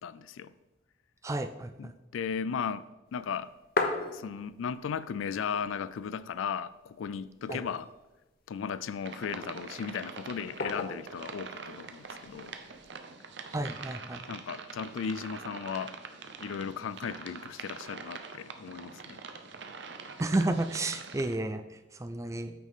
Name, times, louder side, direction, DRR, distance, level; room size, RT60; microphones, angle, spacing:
voice 1, 0.0-0.5 1.8-3.5 4.1-7.9 8.5-12.6 14.3-16.0 16.4-19.2, left 6 dB, 85° left, 0.4 m, -36 dB
voice 2, 1.2-1.9 7.5-7.6 13.5-14.2 20.2-22.5, right 2 dB, 15° right, 0.4 m, -32 dB
sound 1, 3.2-4.8 5.1-5.2 5.4-6.2 6.6-6.7 7.2-8.1 8.7-9.4 10.6-11.2 12.3-12.8, left 3 dB, 50° left, 0.8 m, -34 dB
sound 2, 9.0-21.4, right 4 dB, 65° right, 0.7 m, -44 dB
8.6 x 6.4 x 3.6 m
head